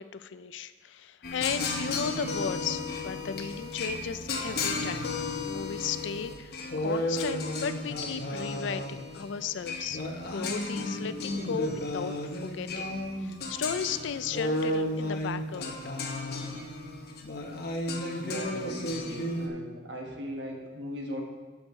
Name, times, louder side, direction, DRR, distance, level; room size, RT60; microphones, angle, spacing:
voice 1, 0.0-5.1 5.4-10.0 10.3-15.7, left 7 dB, 85° left, 13 dB, 0.4 m, -35 dB
sound 1, 1.2-19.5, left 2 dB, 60° left, 0.9 m, -33 dB
voice 2, 18.2-21.2, equal, 75° right, 1 dB, 1.5 m, -39 dB
11.5 x 6.5 x 3.1 m, 1.3 s
head